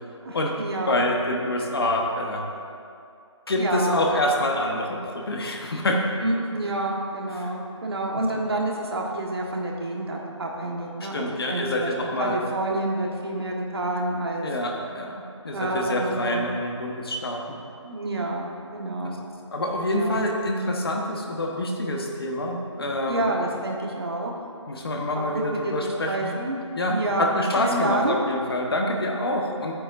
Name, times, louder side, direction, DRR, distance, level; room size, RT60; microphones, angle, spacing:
voice 1, 0.2-1.0 3.6-4.0 6.2-11.9 12.2-14.4 15.5-16.5 17.8-19.2 19.8-20.2 23.1-24.4 25.1-26.6 26.9-28.2, right 2 dB, 55° right, -1 dB, 1.4 m, -28 dB
voice 2, 0.8-2.4 3.5-6.0 7.2-7.5 11.0-12.4 14.4-17.6 19.0-19.1 19.5-23.3 24.7-26.3 26.7-29.8, left 1 dB, 50° left, 1 dB, 1.2 m, -26 dB
13.0 x 8.6 x 2.6 m, 2.4 s
figure-of-eight pair, 165°, 16 cm